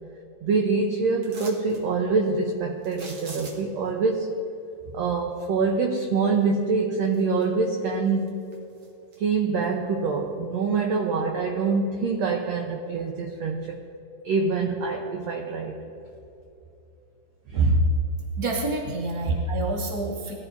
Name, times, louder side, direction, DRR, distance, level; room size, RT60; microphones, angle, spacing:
voice 1, 0.4-4.4 4.9-8.4 9.2-13.8 14.2-15.8 17.5-17.9 19.2-19.4, right 4 dB, 70° right, 1 dB, 1.6 m, -25 dB
sound 1, 1.2-1.8 2.8-3.9 6.4-6.5 7.0-7.7 8.1-9.2 9.6-9.7, right 3 dB, 50° right, 2.2 m, -43 dB
voice 2, 18.4-20.3, right 2 dB, 10° right, -4 dB, 1.5 m, -29 dB
22.0 x 15.0 x 2.7 m, 2.8 s
omnidirectional pair, 4.2 m